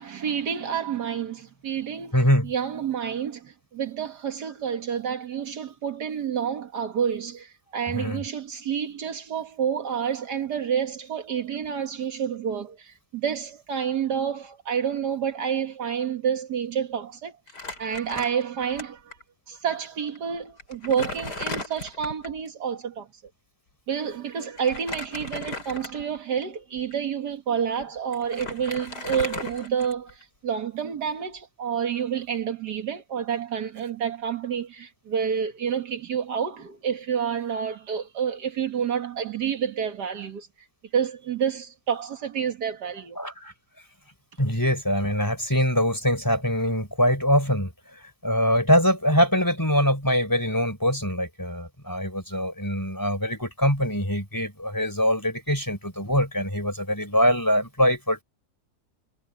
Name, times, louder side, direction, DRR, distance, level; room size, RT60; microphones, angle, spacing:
voice 1, 0.0-2.2 2.4-17.3 17.8-19.1 19.5-23.1 23.9-40.5 40.9-43.2, right 7 dB, 75° right, 2.1 m, -29 dB
voice 2, 2.1-2.5 7.9-8.2 43.2-43.5 44.4-47.7 48.2-58.2, equal, 10° left, 3.8 m, -23 dB
Crumpling crinkling, 17.5-18.8 19.1-19.2 20.1-20.2 20.6-22.4 24.6-26.2 26.8-26.9 27.8-27.9 28.1-30.2, left 2 dB, 75° left, 5.2 m, -36 dB
omnidirectional pair, 1.8 m